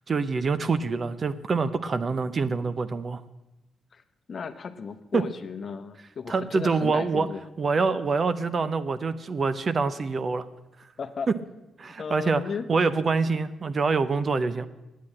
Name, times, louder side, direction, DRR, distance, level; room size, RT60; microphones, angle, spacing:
voice 1, 0.1-3.2 5.1-5.2 6.3-7.3 7.6-10.5 11.8-12.4 12.7-14.7, right 4 dB, 40° right, 13 dB, 0.6 m, -25 dB
voice 2, 4.3-7.4 11.0-11.3 12.0-12.7, left 5 dB, 45° left, 9 dB, 0.9 m, -35 dB
9.3 x 8.6 x 8.5 m, 0.98 s
cardioid pair, 95°, 0 cm